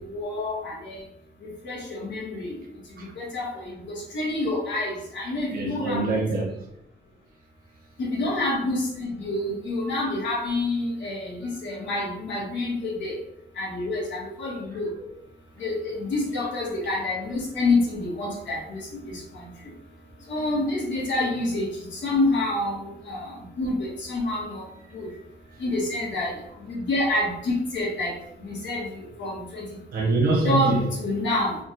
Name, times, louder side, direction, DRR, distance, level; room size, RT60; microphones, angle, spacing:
voice 1, 0.1-1.0 1.6-2.5 3.2-6.0 8.0-13.2 13.6-14.9 15.6-19.0 20.3-24.6 24.9-25.1 25.6-26.3 26.7-28.9 29.2-29.6 30.4-31.6, left 2 dB, 85° left, 1.1 m, -27 dB
voice 2, 5.5-6.6 14.7-14.8 15.1-15.2 16.4-16.5 20.3-20.4 25.1-25.2 25.5-25.6 29.9-30.9 31.1-31.3, right 3 dB, 55° right, 0.8 m, -25 dB
3.4 x 2.2 x 2.7 m
wide cardioid pair, 160°, 18 cm